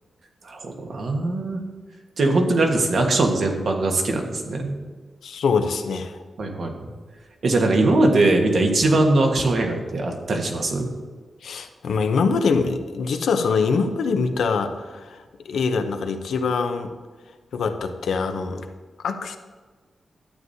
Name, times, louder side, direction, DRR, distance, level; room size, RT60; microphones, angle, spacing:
voice 1, 0.4-1.6 2.2-4.8 6.4-6.7 7.4-10.9, right 2 dB, 60° right, 2 dB, 1.3 m, -21 dB
voice 2, 5.2-6.2 11.4-16.9 17.5-18.7 19.0-19.4, left 5 dB, 90° left, 7 dB, 0.7 m, -24 dB
12.0 x 7.8 x 2.7 m, 1.4 s
wide cardioid pair, 115°, 0 cm